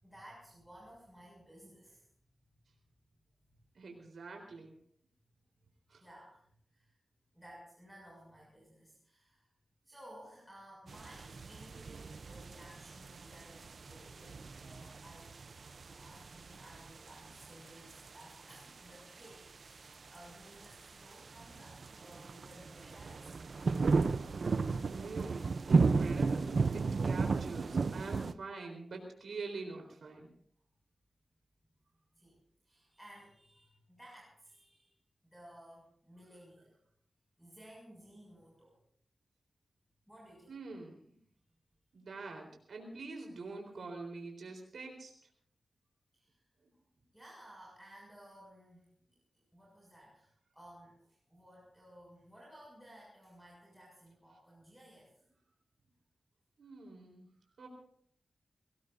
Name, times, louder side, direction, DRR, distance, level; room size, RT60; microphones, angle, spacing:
voice 1, 0.0-2.1 6.0-6.5 6.7-7.0 7.3-9.4 9.8-15.3 15.6-23.4 32.1-34.9 35.3-36.8 37.4-38.8 40.1-40.6 46.1-46.4 47.1-48.9 49.3-55.1, equal, ahead, -5 dB, 6.9 m, -56 dB
voice 2, 3.7-4.7 5.9-6.0 24.9-30.3 40.5-41.2 41.9-45.1 56.6-57.3 57.6-57.7, right 3 dB, 85° right, 2 dB, 3.9 m, -45 dB
sound 1, 10.9-28.3, right 4 dB, 60° right, 0.6 m, -34 dB
23.5 x 19.0 x 2.7 m, 0.62 s
wide cardioid pair, 135°, 0 cm